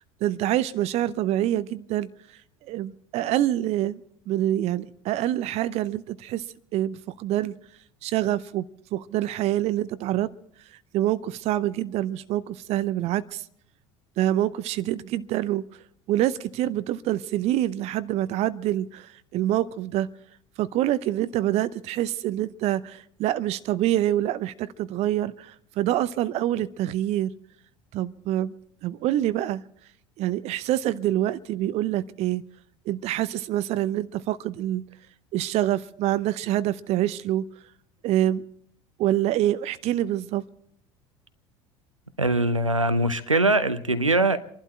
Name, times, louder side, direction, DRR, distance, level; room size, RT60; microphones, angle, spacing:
voice 1, 0.2-2.1 2.7-4.0 4.3-6.4 6.7-7.5 8.0-8.7 8.9-10.3 10.9-13.4 14.2-15.6 16.1-20.1 20.6-27.3 27.9-28.5 28.8-29.6 30.2-32.4 32.9-34.8 35.3-37.4 38.0-38.4 39.0-40.4, right 13 dB, 40° right, 0.7 m, -26 dB
voice 2, 42.2-44.4, right 2 dB, 90° right, 0.8 m, -22 dB
28.5 x 12.0 x 4.3 m
figure-of-eight pair, 70°, 16 cm